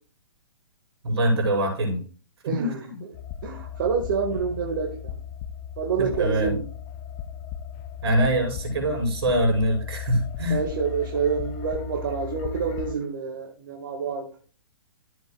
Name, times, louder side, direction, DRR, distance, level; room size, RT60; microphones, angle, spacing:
voice 1, 1.0-2.0 2.5-3.0 6.0-6.6 8.0-10.6, right 1 dB, 70° right, 0 dB, 5.3 m, -24 dB
voice 2, 2.4-2.8 3.4-5.1 5.8-6.7 10.5-14.3, right 6 dB, 50° right, 1 dB, 1.8 m, -27 dB
sound 1, 3.1-13.0, left 9 dB, 30° left, 0.5 m, -36 dB
13.5 x 7.9 x 2.4 m, 0.39 s
hypercardioid pair, 150°, 14 cm